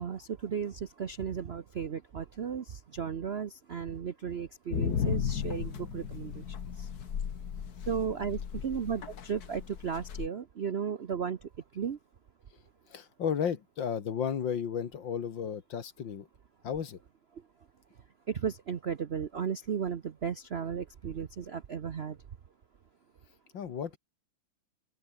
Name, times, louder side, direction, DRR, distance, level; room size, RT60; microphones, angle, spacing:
voice 1, 0.0-6.4 6.8-6.9 7.9-11.4 11.7-12.0 18.3-22.2, right 7 dB, 60° right, 0.7 m, -35 dB
sound 1, 4.7-10.3, left 8 dB, 55° left, 1.8 m, -35 dB
voice 2, 12.9-16.3 16.6-17.0 23.5-24.0, left 7 dB, 70° left, 2.3 m, -33 dB
open air
omnidirectional pair, 2.2 m